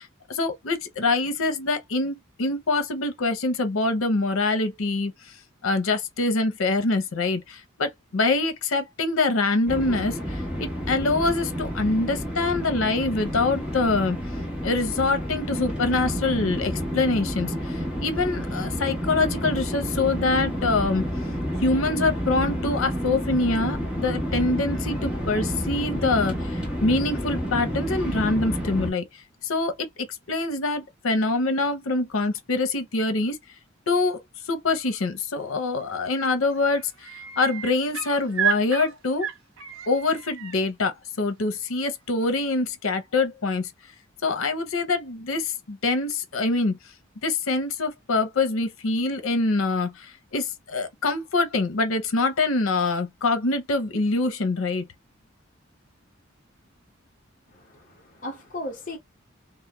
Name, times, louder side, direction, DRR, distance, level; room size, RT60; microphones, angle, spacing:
voice 1, 0.0-5.1 5.6-14.2 14.6-21.1 21.6-29.1 29.4-33.4 33.9-34.2 34.5-39.3 39.9-43.7 44.2-46.8 47.2-54.8, left 3 dB, 85° left, 0.6 m, -25 dB
sound 1, 9.7-28.9, equal, 5° right, 0.9 m, -30 dB
sound 2, 35.9-36.2 36.5-40.6 42.2-42.3, right 9 dB, 80° right, 0.7 m, -31 dB
voice 2, 57.5-59.0, left 1 dB, 40° left, 0.7 m, -36 dB
2.3 x 2.0 x 3.0 m
head